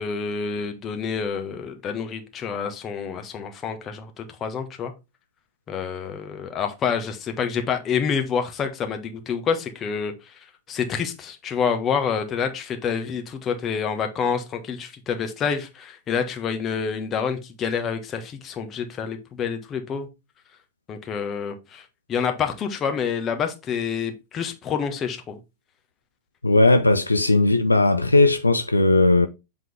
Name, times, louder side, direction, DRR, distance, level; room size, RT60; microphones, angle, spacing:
voice 1, 0.0-4.9 5.7-20.1 20.9-25.4, left 6 dB, 25° left, 1.2 m, -28 dB
voice 2, 26.4-29.3, left 2 dB, 80° left, 0.4 m, -17 dB
7.6 x 3.7 x 3.5 m
figure-of-eight pair, 90°, 0 cm